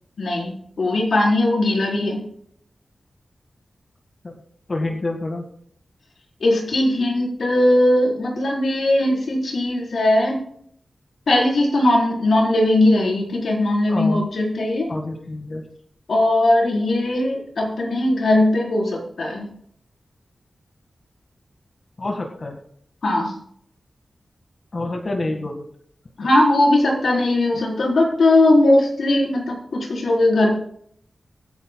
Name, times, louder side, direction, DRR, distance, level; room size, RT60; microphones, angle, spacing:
voice 1, 0.2-2.2 6.4-10.4 11.3-14.9 16.1-19.5 23.0-23.3 26.2-30.6, left 1 dB, 85° left, -2 dB, 4.2 m, -19 dB
voice 2, 4.7-5.4 13.9-14.3 14.9-15.6 22.0-22.6 24.7-25.6, left 2 dB, 45° left, 2 dB, 1.8 m, -27 dB
23.5 x 9.0 x 2.3 m, 0.65 s
wide cardioid pair, 90°, 0 cm